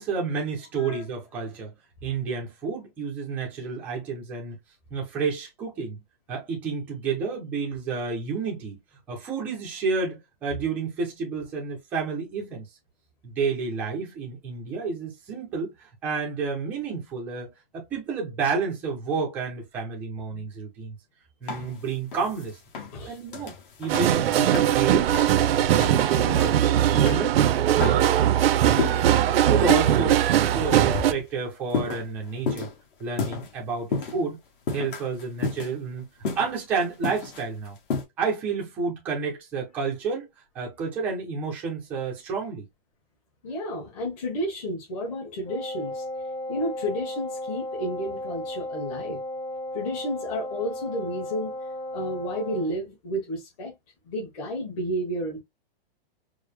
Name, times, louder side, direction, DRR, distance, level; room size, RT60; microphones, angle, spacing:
voice 1, 0.0-1.7 2.0-4.6 4.9-6.0 6.3-8.8 9.1-12.6 13.2-15.7 16.0-21.0 21.4-22.6 23.1-25.1 25.5-28.1 28.6-32.7 33.0-34.4 34.7-36.1 36.4-37.8 38.2-40.3 40.5-42.7, right 5 dB, 5° right, 0.4 m, -30 dB
sound 1, 21.5-24.9 25.1-25.4 25.7-26.7 27.0-27.3 27.8-29.4 29.7-30.0 30.5-31.3 31.7-33.5 33.9-34.2 34.7-36.0 36.2-38.0, left 5 dB, 60° left, 1.5 m, -32 dB
sound 2, 23.9-31.1, right 11 dB, 80° right, 0.6 m, -20 dB
voice 2, 43.4-46.0 46.5-49.2 49.7-51.6 51.9-53.7 54.1-55.4, equal, 35° left, 1.5 m, -31 dB
Wind instrument woodwind instrument, 45.4-52.7, left 1 dB, 85° left, 1.5 m, -35 dB
4.7 x 2.0 x 3.3 m
supercardioid pair, 175°, 30 cm